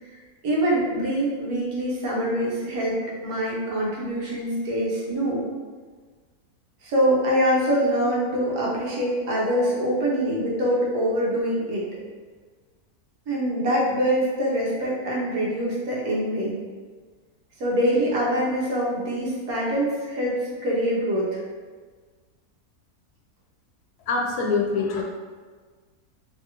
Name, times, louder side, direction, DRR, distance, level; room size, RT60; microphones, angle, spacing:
voice 1, 0.4-5.4 6.8-11.8 13.3-16.6 17.6-21.4, equal, 75° right, -4 dB, 1.3 m, -24 dB
voice 2, 24.1-25.0, left 4 dB, 85° left, 0 dB, 1.1 m, -24 dB
3.2 x 2.4 x 2.8 m, 1.5 s
omnidirectional pair, 1.6 m